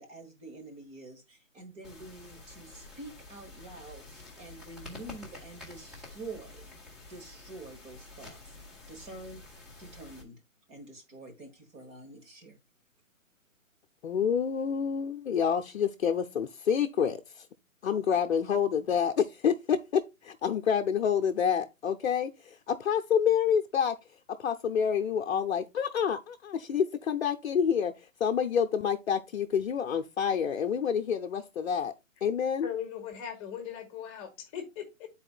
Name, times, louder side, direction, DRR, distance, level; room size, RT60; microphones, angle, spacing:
voice 1, 0.0-6.7 7.1-8.5 8.9-9.4 9.8-10.4 10.7-12.6, right 2 dB, 15° right, 1.3 m, -47 dB
sound 1, 1.8-10.2, left 2 dB, ahead, 1.4 m, -49 dB
voice 2, 14.0-17.5 17.8-24.0 24.4-31.9 32.2-32.7, left 7 dB, 55° left, 0.7 m, -28 dB
voice 3, 32.6-35.1, left 8 dB, 25° left, 1.4 m, -39 dB
11.5 x 4.3 x 2.4 m
figure-of-eight pair, 135°, 40 cm